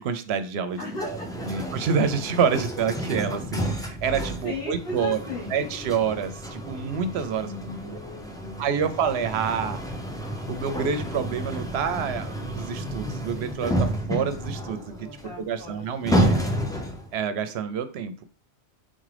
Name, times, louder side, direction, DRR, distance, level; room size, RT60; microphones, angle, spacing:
voice 1, 0.0-0.8 1.0-1.2 1.5-5.2 5.5-7.5 8.6-9.8 10.5-15.1 15.4-16.4 17.1-18.2, right 6 dB, 75° right, 10 dB, 0.8 m, -27 dB
sound 1, 0.7-17.2, right 1 dB, 5° left, 0.4 m, -30 dB
voice 2, 0.8-1.5 4.4-5.6 7.4-8.9 15.2-16.2, left 3 dB, 55° left, -6 dB, 1.4 m, -37 dB
3.9 x 3.7 x 3.2 m, 0.39 s
omnidirectional pair, 1.1 m